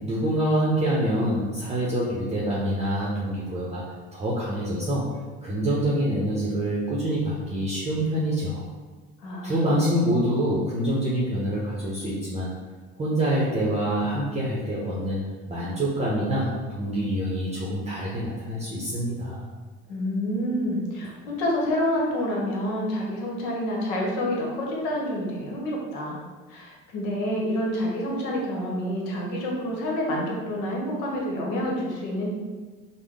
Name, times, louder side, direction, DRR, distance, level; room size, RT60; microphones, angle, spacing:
voice 1, 0.0-3.8 4.1-5.0 5.4-8.6 9.4-12.5 13.0-15.2 15.5-19.4, right 1 dB, 20° right, -6 dB, 0.8 m, -26 dB
voice 2, 9.2-10.3 19.9-26.2 26.5-32.3, equal, 75° left, -2 dB, 0.9 m, -28 dB
3.5 x 2.1 x 3.5 m, 1.4 s
hypercardioid pair, 70°, 29 cm